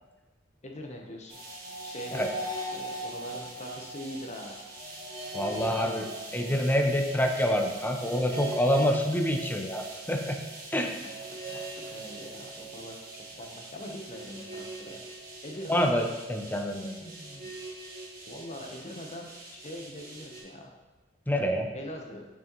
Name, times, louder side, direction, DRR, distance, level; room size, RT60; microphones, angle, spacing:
voice 1, 0.6-1.4 1.8-2.4 2.7-4.6 5.4-5.8 11.0-13.1 13.4-15.0 15.4-15.9 16.8-17.5 18.3-20.7 21.7-22.3, left 1 dB, 35° left, 2 dB, 0.9 m, -42 dB
sound 1, 1.3-20.4, right 1 dB, 50° right, 1.5 m, -41 dB
voice 2, 5.3-6.1 6.3-10.4 10.7-10.9 15.7-16.9 21.3-21.7, equal, 10° left, 3 dB, 0.6 m, -27 dB
6.7 x 6.2 x 3.0 m, 1.1 s
head